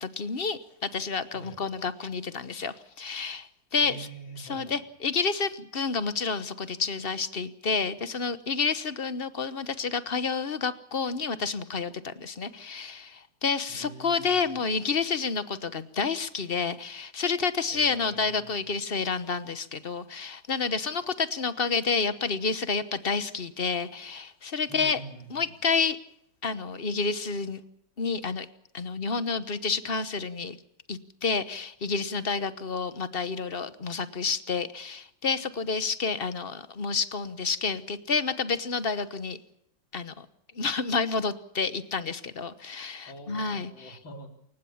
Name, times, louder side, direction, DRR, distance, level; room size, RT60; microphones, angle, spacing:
voice 1, 0.0-4.1 4.4-25.0 25.3-26.0 26.4-27.6 28.0-28.5 28.7-30.6 30.9-39.4 39.9-40.3 40.5-44.0, left 5 dB, 40° left, 13 dB, 1.0 m, -29 dB
voice 2, 3.8-4.8 13.7-14.7 17.7-18.7 24.7-25.5 43.1-44.3, right 2 dB, 80° left, 4 dB, 4.8 m, -45 dB
28.0 x 16.0 x 7.2 m, 0.71 s
omnidirectional pair, 2.0 m